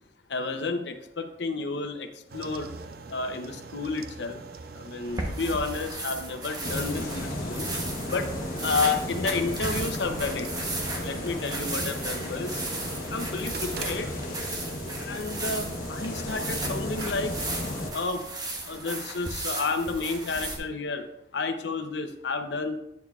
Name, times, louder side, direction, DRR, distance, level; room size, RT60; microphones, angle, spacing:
voice 1, 0.3-2.7 3.1-4.4 4.7-8.3 8.6-10.5 11.0-12.7 13.1-14.1 15.0-17.3 17.9-18.2 18.6-21.1 21.3-22.8, left 4 dB, 75° left, 7 dB, 0.7 m, -31 dB
sound 1, 2.3-17.1, right 4 dB, 55° right, 0.4 m, -44 dB
sound 2, 5.0-20.6, right 2 dB, 20° right, 0.9 m, -36 dB
sound 3, 6.6-17.9, left 1 dB, 50° left, 1.1 m, -34 dB
9.4 x 6.6 x 2.4 m, 0.83 s
head